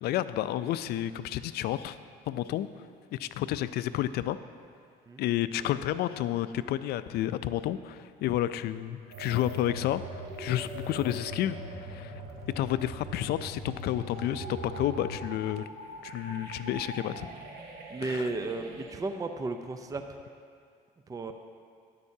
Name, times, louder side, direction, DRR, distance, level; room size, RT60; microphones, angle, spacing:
voice 1, 0.0-2.0 2.3-2.7 3.1-4.4 5.2-12.2 12.6-15.6 16.0-17.3 18.0-18.3, left 12 dB, 70° left, 13 dB, 0.4 m, -31 dB
sound 1, 9.1-19.0, right 1 dB, 70° right, 1.4 m, -41 dB
voice 2, 17.9-20.0 21.1-21.3, right 3 dB, 20° right, 6 dB, 0.5 m, -34 dB
13.0 x 9.5 x 2.7 m, 2.2 s
cardioid pair, 110°, 17 cm